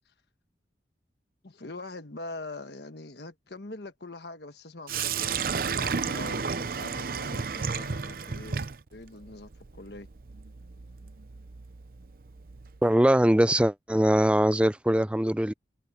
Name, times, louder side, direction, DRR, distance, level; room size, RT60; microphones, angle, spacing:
voice 1, 1.4-9.5 9.8-10.1, left 2 dB, 70° left, 1.3 m, -43 dB
Sink (filling or washing), 4.9-12.8, right 5 dB, 55° right, 0.6 m, -33 dB
voice 2, 12.8-15.5, right 1 dB, 5° right, 0.4 m, -22 dB
head